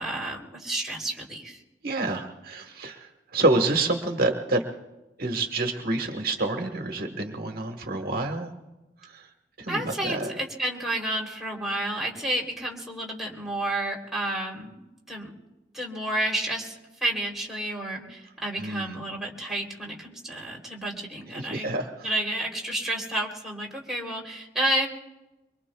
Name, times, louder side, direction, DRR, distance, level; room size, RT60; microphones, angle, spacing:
voice 1, 0.0-1.6 9.7-15.3 15.7-16.7 17.0-21.7 22.0-24.9, right 1 dB, ahead, -3 dB, 3.2 m, -30 dB
voice 2, 1.8-4.6 5.2-8.5 9.0-9.3 9.6-10.3 18.6-19.0 21.3-22.1, right 2 dB, 55° right, 4 dB, 1.4 m, -28 dB
24.5 x 24.5 x 2.3 m, 1.0 s
head